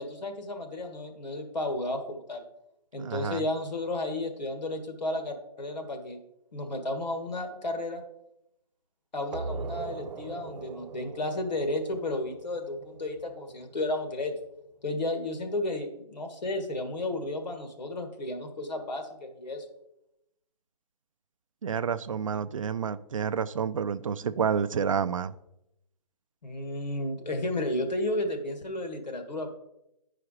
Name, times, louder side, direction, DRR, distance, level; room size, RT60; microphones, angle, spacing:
voice 1, 0.0-2.5 2.9-6.2 6.5-8.0 9.1-14.3 14.8-19.7 26.4-29.5, left 1 dB, 90° left, 1.7 m, -33 dB
voice 2, 3.0-3.4 21.6-25.3, right 7 dB, 50° right, 0.4 m, -29 dB
sound 1, 9.3-14.7, right 4 dB, 90° right, 0.7 m, -41 dB
9.7 x 4.9 x 4.8 m
hypercardioid pair, 170°, 21 cm